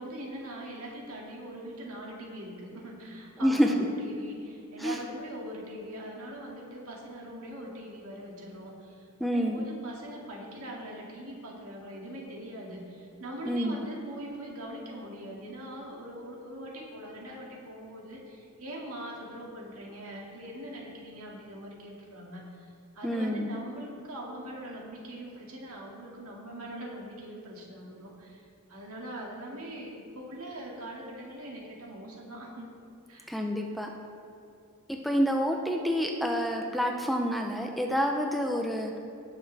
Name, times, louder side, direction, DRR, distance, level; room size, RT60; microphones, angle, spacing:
voice 1, 0.0-22.7 22.9-32.7 33.1-33.3, right 1 dB, 70° right, -2 dB, 2.2 m, -42 dB
voice 2, 3.4-3.7 4.8-5.0 9.2-9.6 13.5-13.8 23.0-23.5 33.3-33.9 34.9-39.0, equal, ahead, 2 dB, 0.5 m, -28 dB
18.5 x 6.7 x 3.4 m, 2.6 s
head